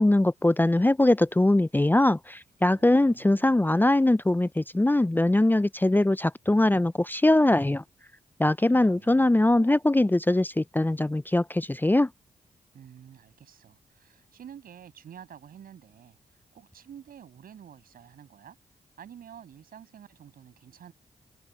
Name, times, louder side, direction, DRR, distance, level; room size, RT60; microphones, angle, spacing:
voice 1, 0.0-7.8 8.4-12.1, left 1 dB, 15° left, 0.6 m, -22 dB
voice 2, 2.7-3.7 8.6-9.4 12.7-16.2 16.5-18.6 19.0-20.9, right 9 dB, 80° right, 7.9 m, -49 dB
supercardioid pair, 45°, 15 cm